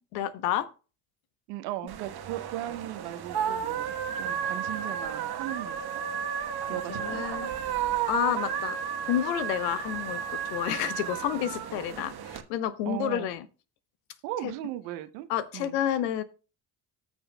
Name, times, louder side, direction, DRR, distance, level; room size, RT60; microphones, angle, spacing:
voice 1, 0.1-0.7 6.7-7.5 8.0-8.8 9.0-13.4 14.4-14.5 15.3-16.2, left 11 dB, 80° left, 0.9 m, -30 dB
voice 2, 1.5-6.0 6.7-7.3 12.9-13.3 14.2-15.3 15.5-15.7, right 14 dB, 85° right, 0.9 m, -37 dB
sound 1, 1.9-12.4, right 8 dB, 50° right, 1.3 m, -33 dB
18.5 x 6.2 x 2.2 m
hypercardioid pair, 55°, 48 cm